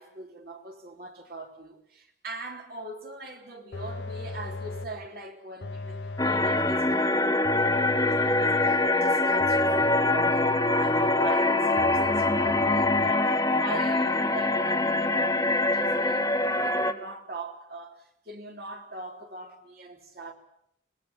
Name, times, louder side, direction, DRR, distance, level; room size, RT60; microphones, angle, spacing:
voice 1, 0.0-20.3, right 2 dB, 55° right, 3.5 m, -41 dB
sound 1, 3.7-5.1 5.6-6.9 7.4-8.9 9.4-11.3 11.8-13.1, left 2 dB, 80° left, 0.8 m, -37 dB
sound 2, 6.2-16.9, left 2 dB, 20° left, 1.2 m, -24 dB
25.0 x 20.5 x 7.2 m
head